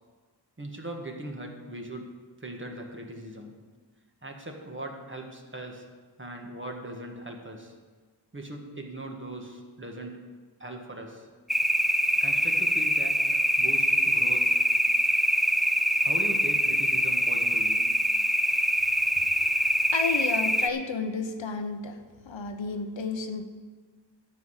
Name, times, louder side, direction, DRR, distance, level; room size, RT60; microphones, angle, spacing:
voice 1, 0.6-2.1 2.4-3.6 4.2-5.9 6.2-7.7 8.3-10.3 10.6-11.3 12.2-14.6 16.0-17.9, right 1 dB, 25° right, 2 dB, 1.6 m, -40 dB
sound 1, 11.5-20.7, equal, ahead, 0.4 m, -24 dB
voice 2, 19.4-23.4, left 4 dB, 75° left, 6 dB, 1.0 m, -32 dB
12.0 x 5.7 x 8.1 m, 1.5 s
wide cardioid pair, 90°, 45 cm